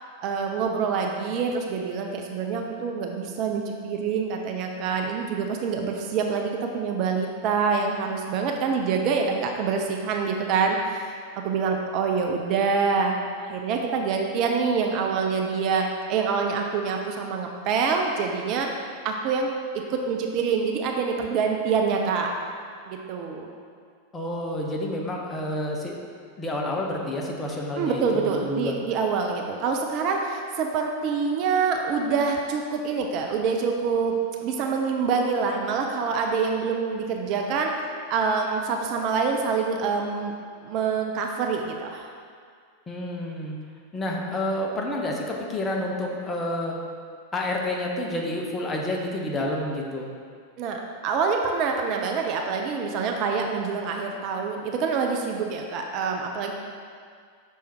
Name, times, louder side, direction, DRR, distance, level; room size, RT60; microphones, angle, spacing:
voice 1, 0.2-18.7 19.0-22.3 22.9-23.5 27.8-37.7 38.1-40.3 40.6-42.1 50.6-56.5, right 5 dB, 40° right, 2 dB, 0.5 m, -26 dB
voice 2, 24.1-26.0 26.4-28.8 42.9-43.6 43.9-46.8 47.3-50.1, left 1 dB, 15° left, -1 dB, 0.8 m, -29 dB
6.3 x 3.5 x 4.3 m, 2.1 s
figure-of-eight pair, 90°, 0 cm